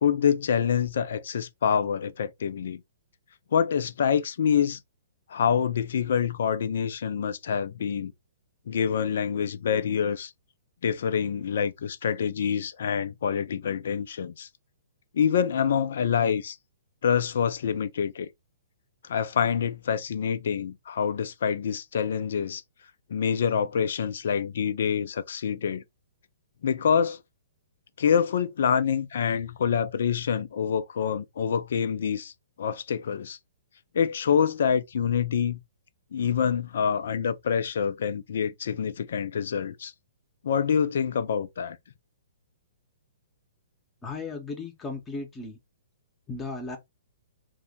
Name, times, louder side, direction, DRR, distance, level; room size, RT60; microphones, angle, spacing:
voice 1, 0.0-2.8 3.5-4.8 5.3-8.1 8.7-10.3 10.8-14.5 15.1-16.6 17.0-18.3 19.0-22.6 23.1-25.8 26.6-27.2 28.0-32.3 32.6-33.4 33.9-35.6 36.1-39.9 40.4-41.8, left 7 dB, 65° left, 0.4 m, -26 dB
voice 2, 44.0-45.6 46.3-46.8, left 3 dB, 15° left, 0.8 m, -35 dB
2.7 x 2.2 x 4.0 m
hypercardioid pair, 125°, 0 cm